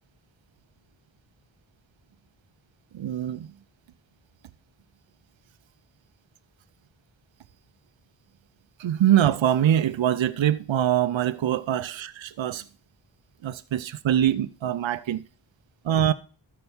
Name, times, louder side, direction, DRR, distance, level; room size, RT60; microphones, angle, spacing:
voice 1, 2.9-3.5 8.8-12.7 13.4-15.2 15.8-16.1, right 11 dB, 70° right, 0.6 m, -23 dB
13.0 x 4.6 x 7.0 m
wide cardioid pair, 55°, 47 cm